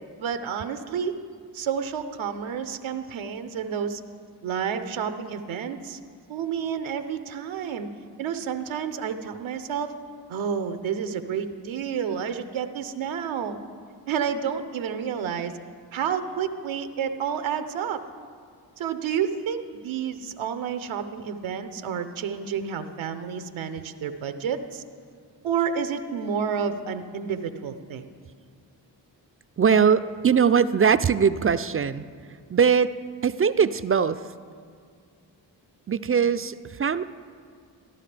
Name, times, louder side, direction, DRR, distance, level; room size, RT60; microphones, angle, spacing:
voice 1, 0.2-1.2 1.5-4.0 4.4-6.0 6.3-7.9 8.2-9.9 10.3-13.6 14.1-15.6 15.9-18.0 18.8-24.8 25.4-28.0, right 7 dB, 85° right, 9 dB, 0.7 m, -30 dB
voice 2, 29.6-32.0 32.5-32.9 33.2-34.2 35.9-37.0, right 6 dB, 30° right, 14 dB, 0.4 m, -21 dB
14.0 x 12.0 x 3.3 m, 2.1 s
supercardioid pair, 45°, 46 cm